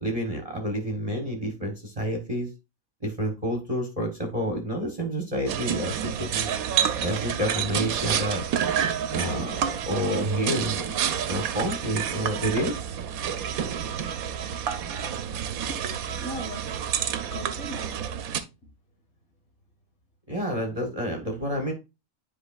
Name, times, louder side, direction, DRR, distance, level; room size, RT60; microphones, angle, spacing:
voice 1, 0.0-2.5 3.0-6.5 7.0-8.4 9.1-12.8 20.3-21.7, equal, 30° right, 1.2 m, -29 dB
sound 1, 5.5-18.4, right 8 dB, 85° right, 1.2 m, -29 dB
voice 2, 15.6-16.7 17.3-18.0 18.6-18.7 21.3-21.4, right 1 dB, 80° left, 2.2 m, -39 dB
10.0 x 4.6 x 2.4 m
omnidirectional pair, 1.5 m